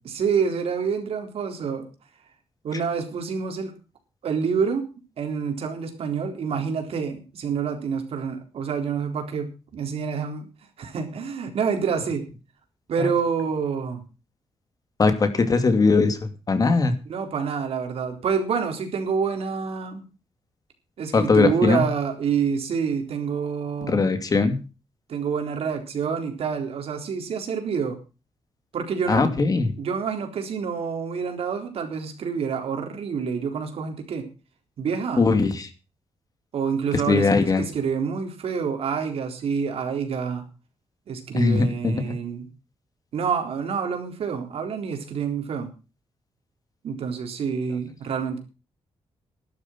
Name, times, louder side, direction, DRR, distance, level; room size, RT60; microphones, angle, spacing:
voice 1, 0.0-1.9 2.6-3.7 4.2-4.9 5.2-10.5 10.8-12.3 12.9-14.0 17.1-20.0 21.0-24.1 25.1-28.0 28.7-29.3 29.8-34.3 34.8-35.3 36.5-40.4 41.1-42.5 43.1-45.7 46.8-48.4, right 6 dB, 70° right, 5 dB, 4.0 m, -27 dB
voice 2, 15.0-16.9 21.1-21.8 23.9-24.6 29.1-29.7 35.2-35.7 37.1-37.6 41.3-41.9, left 4 dB, 35° left, 9 dB, 2.5 m, -20 dB
12.0 x 12.0 x 5.9 m, 0.33 s
cardioid pair, 115°, 10 cm